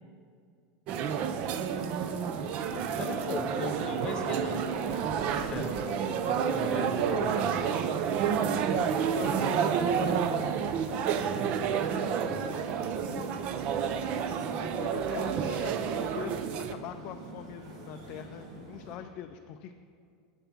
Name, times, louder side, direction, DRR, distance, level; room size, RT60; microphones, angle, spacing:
voice 1, 0.9-1.4 8.0-8.2 8.9-10.6 11.5-13.5 14.8-16.3 16.6-19.7, left 10 dB, 40° left, 6 dB, 0.4 m, -44 dB
sound 1, 0.9-16.7, right 7 dB, 40° right, 0.5 m, -30 dB
sound 2, 1.4-19.0, right 1 dB, 90° right, 1.8 m, -43 dB
voice 2, 3.0-7.4, left 5 dB, 25° left, 5 dB, 1.0 m, -39 dB
7.2 x 6.9 x 7.3 m, 2.3 s
supercardioid pair, 150°, 3 cm